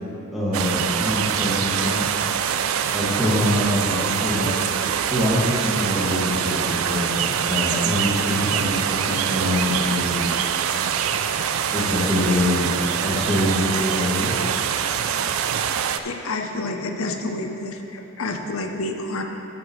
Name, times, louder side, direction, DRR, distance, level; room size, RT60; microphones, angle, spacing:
voice 1, 0.3-2.1 2.9-4.5 5.1-7.1 7.5-10.4 11.7-12.7 13.0-14.3, left 1 dB, ahead, -9 dB, 2.0 m, -24 dB
sound 1, 0.5-16.0, right 8 dB, 85° right, 0.4 m, -24 dB
voice 2, 16.0-19.2, left 2 dB, 85° left, 4 dB, 0.7 m, -29 dB
12.5 x 6.9 x 3.2 m, 3.0 s
head